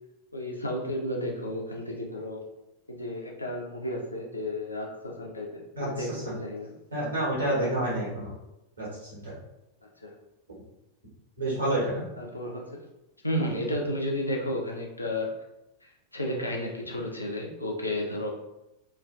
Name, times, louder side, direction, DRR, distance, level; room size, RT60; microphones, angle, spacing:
voice 1, 0.3-2.4 2.9-6.7 7.6-7.8 10.0-10.1 12.2-12.8 13.2-15.3 16.1-18.3, left 1 dB, 80° left, 0 dB, 0.4 m, -32 dB
voice 2, 5.7-6.4 6.9-8.3 8.8-9.3 11.4-12.1, right 1 dB, 75° right, -7 dB, 1.3 m, -29 dB
3.2 x 2.3 x 2.5 m, 0.90 s
figure-of-eight pair, 90°, 0 cm